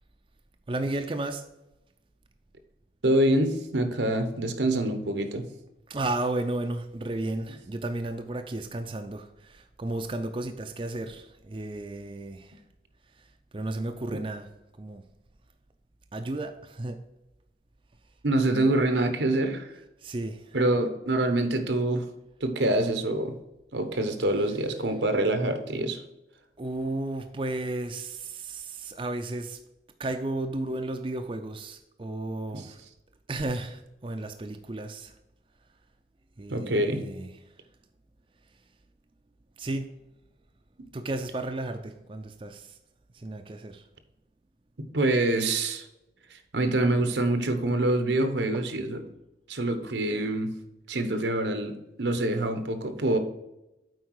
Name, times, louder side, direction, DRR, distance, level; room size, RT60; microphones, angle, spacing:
voice 1, 0.7-1.4 5.9-12.6 13.5-14.5 14.8-15.0 16.1-17.0 20.0-20.6 26.6-29.6 30.0-32.8 33.3-35.1 36.4-37.3 39.6-39.9 40.9-42.7 43.1-43.8, right 2 dB, 30° right, 6 dB, 0.5 m, -33 dB
voice 2, 3.0-5.4 18.2-19.7 20.5-22.1 22.4-23.3 23.7-26.0 32.5-32.6 36.5-37.0 44.9-45.9 46.3-49.0 49.5-50.5 50.9-53.2, right 1 dB, 85° right, 8 dB, 1.0 m, -25 dB
7.9 x 4.8 x 4.7 m, 0.94 s
head